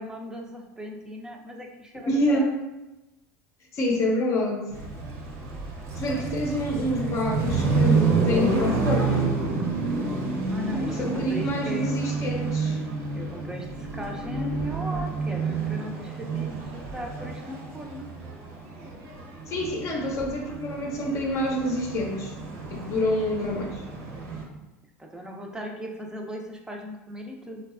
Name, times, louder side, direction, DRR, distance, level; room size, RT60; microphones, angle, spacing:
voice 1, 0.0-2.4 10.5-11.9 13.1-18.1 25.0-27.6, equal, 10° right, 1 dB, 0.5 m, -38 dB
voice 2, 2.1-2.5 3.7-4.7 6.0-9.3 10.9-12.8 19.5-22.3 22.7-23.8, left 1 dB, 45° left, 0 dB, 0.6 m, -27 dB
sound 1, 4.7-24.4, right 4 dB, 55° right, 0.8 m, -29 dB
3.9 x 2.2 x 2.4 m, 1.0 s
hypercardioid pair, 90°, 7 cm